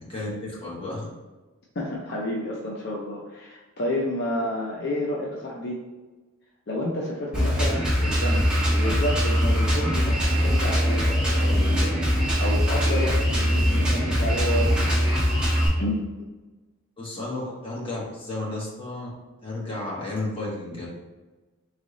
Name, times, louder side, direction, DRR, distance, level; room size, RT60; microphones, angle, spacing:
voice 1, 0.1-1.1 17.0-19.1 19.4-20.9, left 2 dB, 25° left, -6 dB, 1.4 m, -32 dB
voice 2, 1.7-5.8 6.7-14.9 15.8-16.3, left 1 dB, 55° left, -3 dB, 0.6 m, -30 dB
Drum kit, 7.3-15.7, equal, 5° right, 1.5 m, -22 dB
3.6 x 3.3 x 3.9 m, 1.2 s
head